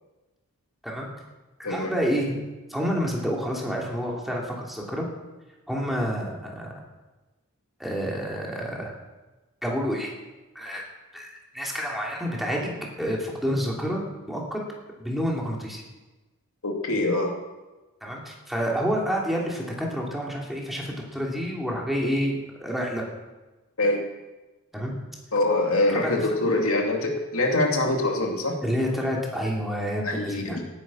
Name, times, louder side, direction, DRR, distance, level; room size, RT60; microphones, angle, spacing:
voice 1, 1.6-2.4 2.7-5.1 5.7-6.7 7.8-8.9 9.6-10.1 10.5-10.8 11.1-14.6 15.0-15.8 18.0-23.0 24.7-25.0 25.9-26.2 28.6-30.6, equal, ahead, -2 dB, 2.9 m, -29 dB
voice 2, 16.6-17.3 23.8-24.1 25.3-28.6 30.0-30.6, left 2 dB, 70° left, 1 dB, 2.5 m, -24 dB
17.5 x 9.9 x 6.3 m, 1.1 s
head